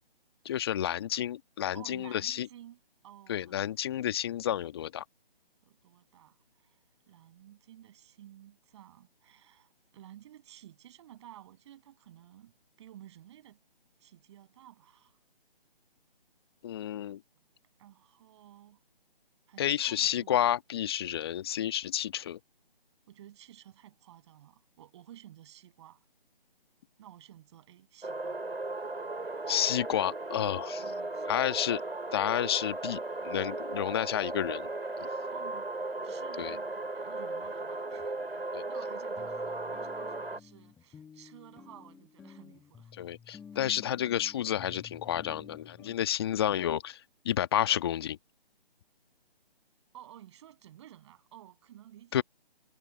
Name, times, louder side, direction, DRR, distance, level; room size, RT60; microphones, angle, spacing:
voice 1, 0.4-2.5 3.3-5.0 16.6-17.2 19.6-22.4 29.5-30.8 31.3-31.8 32.1-34.7 35.0-35.1 36.4-36.5 38.5-38.6 43.0-48.2 52.1-52.2, left 11 dB, 25° left, 1.5 m, -30 dB
voice 2, 1.7-3.5 5.6-6.8 7.1-13.6 14.0-15.2 17.8-18.8 19.5-20.5 23.1-26.0 27.0-28.4 30.8-31.4 35.3-35.7 36.0-36.7 36.9-42.9 49.9-52.2, right 12 dB, 30° right, 7.7 m, -53 dB
sound 1, 28.0-40.4, right 2 dB, 80° right, 4.8 m, -36 dB
sound 2, 37.4-37.5 38.0-38.1 38.5-38.6 39.2-46.0, left 7 dB, 5° left, 1.5 m, -52 dB
figure-of-eight pair, 150°, 30 cm